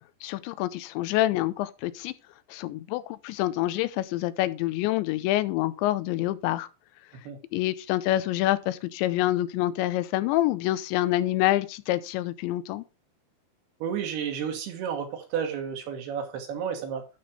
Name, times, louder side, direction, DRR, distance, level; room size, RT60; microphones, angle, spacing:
voice 1, 0.2-2.1 2.5-6.7 7.5-12.8, left 15 dB, 90° left, 2.9 m, -27 dB
voice 2, 13.8-17.1, right 7 dB, 70° right, 3.2 m, -31 dB
12.0 x 4.3 x 5.0 m
omnidirectional pair, 5.2 m